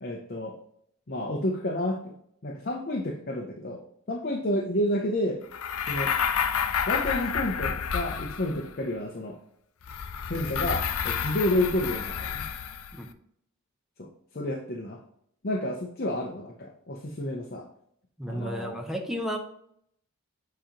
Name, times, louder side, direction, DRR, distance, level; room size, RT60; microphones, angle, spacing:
voice 1, 0.0-0.5 1.1-2.1 2.4-3.8 4.1-5.4 5.9-6.1 6.9-9.4 10.3-12.5 14.0-14.1 14.3-15.0 15.4-17.7 18.3-18.8, left 1 dB, 45° left, 2 dB, 0.7 m, -30 dB
sound 1, 5.5-8.8 9.8-13.0, left 7 dB, 85° left, 0.5 m, -30 dB
voice 2, 18.2-19.4, equal, ahead, 3 dB, 0.7 m, -32 dB
7.7 x 3.0 x 5.0 m, 0.69 s
head